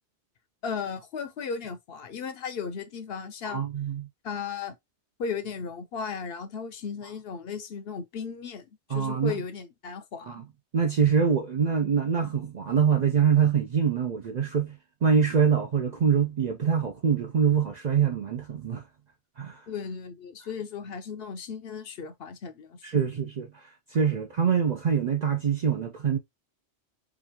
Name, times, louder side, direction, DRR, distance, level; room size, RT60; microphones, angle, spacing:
voice 1, 0.6-3.6 4.2-4.7 5.2-10.4 19.7-23.0, left 6 dB, 65° left, 0.8 m, -36 dB
voice 2, 3.4-4.1 8.9-9.4 10.3-10.4 10.7-18.8 19.4-19.7 22.8-26.2, right 7 dB, 55° right, 0.5 m, -25 dB
4.9 x 2.4 x 2.8 m
omnidirectional pair, 1.2 m